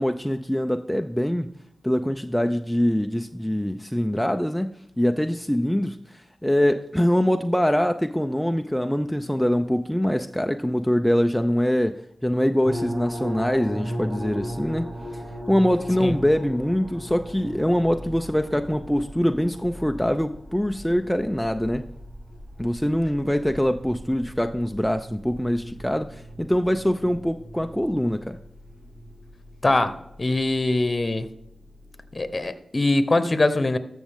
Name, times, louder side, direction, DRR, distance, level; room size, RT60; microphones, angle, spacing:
voice 1, 0.0-1.5 1.8-4.7 5.0-21.9 22.6-28.4, equal, 5° left, 0.5 m, -24 dB
sound 1, 12.6-32.4, equal, 45° right, 2.3 m, -38 dB
voice 2, 29.6-31.3 32.1-33.8, left 2 dB, 40° left, 0.9 m, -22 dB
13.5 x 6.3 x 3.6 m
cardioid pair, 45°, 0 cm